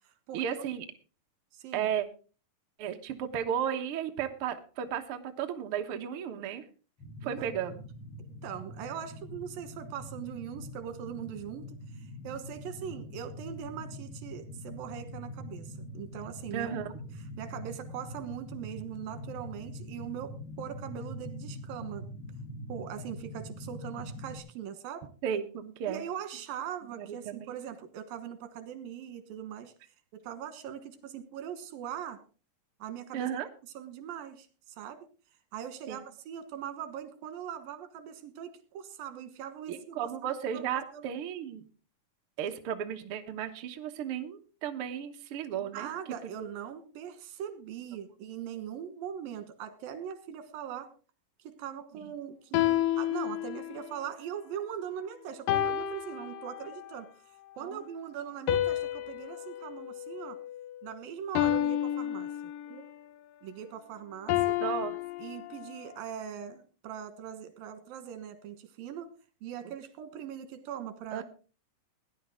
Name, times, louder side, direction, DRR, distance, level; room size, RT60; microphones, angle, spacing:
voice 1, 0.3-0.9 1.7-2.1 2.8-6.6 7.2-7.8 16.5-16.9 25.2-26.0 26.9-27.6 33.1-33.5 35.9-36.0 39.7-41.6 42.4-45.9 46.2-46.5 51.9-52.1 57.6-57.9 62.7-62.8 64.6-65.0 71.1-71.2, right 9 dB, 55° right, 5 dB, 1.6 m, -34 dB
voice 2, 1.5-1.9 7.2-7.5 8.4-16.7 17.4-22.0 22.7-25.1 25.9-29.7 30.1-32.2 32.8-33.3 33.7-34.5 34.8-35.1 35.5-40.7 40.9-41.1 45.6-50.9 51.4-57.1 57.6-60.4 60.8-62.3 63.4-64.6 65.2-69.1 69.4-71.2, right 9 dB, 85° right, 10 dB, 3.1 m, -41 dB
sound 1, 7.0-24.4, left 1 dB, 40° left, 3.5 m, -43 dB
sound 2, 52.5-53.9 55.5-56.9 58.5-60.8 61.4-62.9 64.3-65.9, left 12 dB, 80° left, 2.4 m, -31 dB
17.5 x 10.5 x 3.7 m, 0.36 s
omnidirectional pair, 4.0 m